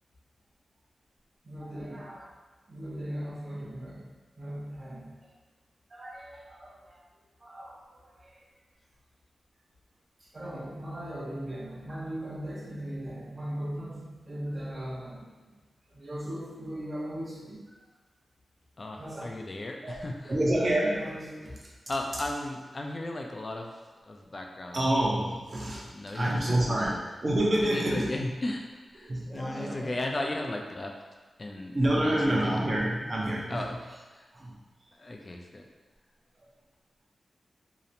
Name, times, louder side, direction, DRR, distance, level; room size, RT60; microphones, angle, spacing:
voice 1, 1.4-2.3 2.7-4.1 4.4-5.2 5.9-7.0 7.4-8.5 10.2-15.3 15.9-17.6 19.0-19.2 19.8-21.7 24.7-28.1 29.0-29.9 31.7-33.8 34.3-34.6, right 1 dB, 45° right, -4 dB, 0.6 m, -31 dB
voice 2, 18.8-20.3 21.9-23.7 24.0-24.8 25.9-26.6 27.6-28.6 28.9-30.9 31.4-32.5 33.5-33.8 34.1-34.3 35.0-35.7, left 1 dB, 40° left, 2 dB, 0.3 m, -35 dB
2.8 x 2.0 x 2.5 m, 1.3 s
cardioid pair, 65°, 0 cm